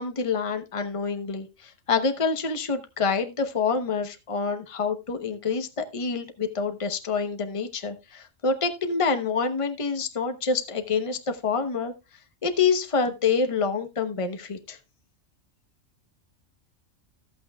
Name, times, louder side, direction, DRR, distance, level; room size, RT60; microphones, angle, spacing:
voice 1, 0.0-11.9 12.4-14.8, left 5 dB, 25° left, 7 dB, 1.0 m, -27 dB
14.0 x 8.4 x 2.3 m, 0.25 s
omnidirectional pair, 1.3 m